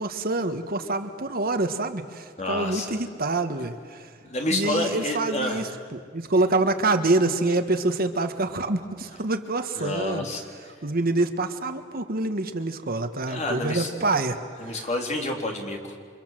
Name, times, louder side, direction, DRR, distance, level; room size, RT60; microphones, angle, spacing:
voice 1, 0.0-4.1 4.5-10.3 10.8-14.4 14.7-14.9, right 2 dB, 50° right, 8 dB, 1.6 m, -26 dB
voice 2, 2.4-3.0 4.2-5.7 6.4-6.5 9.7-10.7 13.3-14.0 14.6-16.0, left 1 dB, 35° left, 1 dB, 4.0 m, -29 dB
29.0 x 25.5 x 7.7 m, 2.2 s
head